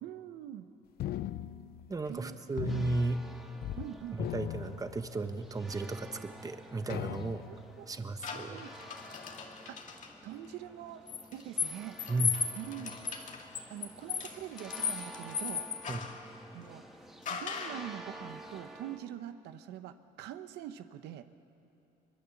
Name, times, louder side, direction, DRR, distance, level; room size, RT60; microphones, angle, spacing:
voice 1, 0.0-0.7 2.1-2.6 3.8-4.2 7.5-7.9 8.3-8.7 9.7-9.9 10.2-11.0 11.3-12.0 12.6-12.9 13.7-15.7 16.5-16.8 17.3-21.2, right 11 dB, 85° right, 10 dB, 0.9 m, -44 dB
sound 1, 1.0-2.2 2.6-5.4 6.0-6.1 6.9-7.7, left 13 dB, 65° left, 0.6 m, -39 dB
voice 2, 1.9-3.2 4.2-7.4 7.9-8.6 12.1-12.3 15.9-16.1, right 3 dB, 20° right, 8 dB, 1.2 m, -34 dB
sound 2, 2.7-19.0, right 1 dB, ahead, 1.5 m, -51 dB
sound 3, 8.2-10.1 11.1-16.2 17.2-17.9, left 6 dB, 45° left, 2.2 m, -36 dB
23.5 x 22.0 x 7.2 m, 2.8 s
cardioid pair, 110°, 17 cm